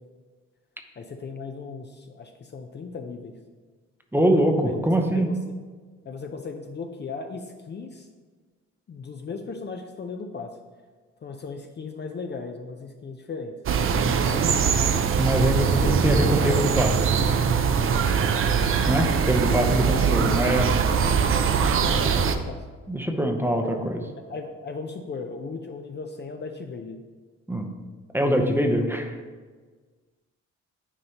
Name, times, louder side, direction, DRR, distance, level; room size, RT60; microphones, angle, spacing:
voice 1, 1.0-3.3 4.6-4.8 5.1-5.5 6.1-8.1 8.9-10.5 11.2-13.5 15.5-16.7 19.4-19.6 19.8-20.4 21.3-22.6 23.6-27.0 28.2-28.8, left 4 dB, 35° left, 5 dB, 0.5 m, -37 dB
voice 2, 4.1-5.3 15.2-16.9 18.9-20.7 22.9-24.0 27.5-27.7 28.1-29.1, right 1 dB, 5° right, 4 dB, 0.7 m, -23 dB
sound 1, 13.7-22.4, right 6 dB, 45° right, 0.5 m, -22 dB
9.8 x 4.2 x 2.9 m, 1.4 s
cardioid pair, 90°, 30 cm